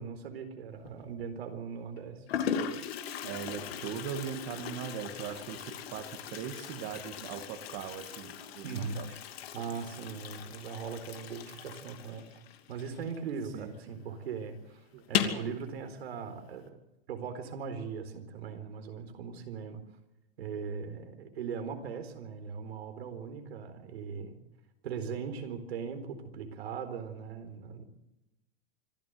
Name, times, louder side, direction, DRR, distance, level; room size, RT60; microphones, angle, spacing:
voice 1, 0.0-2.2 8.6-9.0 9.5-12.4 12.7-16.8 17.1-19.8 20.4-24.4 24.8-27.8, right 6 dB, 85° right, 8 dB, 4.3 m, -39 dB
Toilet flush, 0.8-1.3 2.0-2.1 2.3-13.6 13.8-13.9 14.2-14.3 15.0-15.5, left 8 dB, 75° left, 2.7 m, -38 dB
voice 2, 3.2-9.1 13.5-14.0 14.9-15.1, right 8 dB, 45° right, 3 dB, 2.4 m, -40 dB
25.5 x 14.0 x 8.0 m, 0.94 s
supercardioid pair, 145°, 30 cm